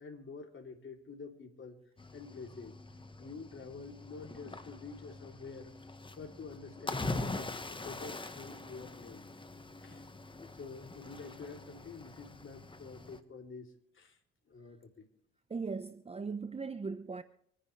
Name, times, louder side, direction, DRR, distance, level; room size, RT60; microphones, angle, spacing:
voice 1, 0.0-1.8 2.1-2.7 3.2-5.7 6.2-9.3 9.8-10.1 10.5-14.2 14.5-15.1, left 4 dB, 40° left, 3.4 m, -48 dB
Cricket / Waves surf, 2.0-13.2, left 2 dB, 15° left, 1.5 m, -43 dB
voice 2, 15.5-17.2, right 4 dB, 20° right, 0.9 m, -38 dB
26.0 x 10.0 x 3.4 m
hypercardioid pair, 55°, 30 cm